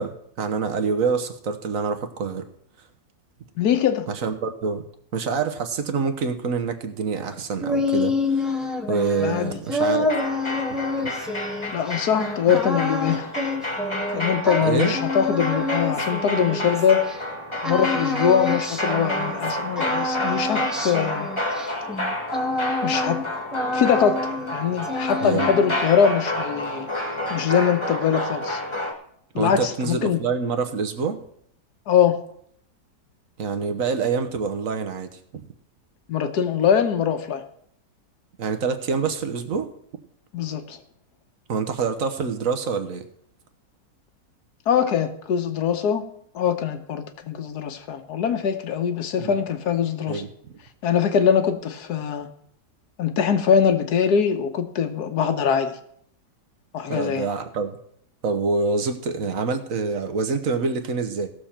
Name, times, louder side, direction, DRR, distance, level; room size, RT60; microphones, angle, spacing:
voice 1, 0.0-2.4 4.1-4.8 5.1-8.5 8.9-10.1 11.0-11.1 14.6-15.0 25.2-25.5 29.3-31.2 33.4-35.5 38.4-39.7 41.5-43.0 49.2-49.4 50.1-50.6 56.9-57.7 58.2-61.3, right 5 dB, 55° right, 8 dB, 1.3 m, -26 dB
voice 2, 3.6-4.1 9.2-9.6 11.7-13.3 14.1-17.0 17.6-21.3 22.8-23.2 23.7-26.9 27.3-28.6 29.3-30.2 31.9-32.2 36.1-37.4 40.3-40.8 44.7-46.0 46.3-50.2 50.8-52.3 53.0-55.7 56.7-57.2, left 8 dB, 65° left, 8 dB, 1.5 m, -22 dB
sound 1, 7.3-17.2 17.6-19.5 19.8-23.3 23.5-24.5 24.8-25.8, left 2 dB, ahead, 0.7 m, -27 dB
sound 2, 10.0-28.9, left 1 dB, 15° left, 1.4 m, -30 dB
17.0 x 7.0 x 4.4 m, 0.68 s
omnidirectional pair, 1.9 m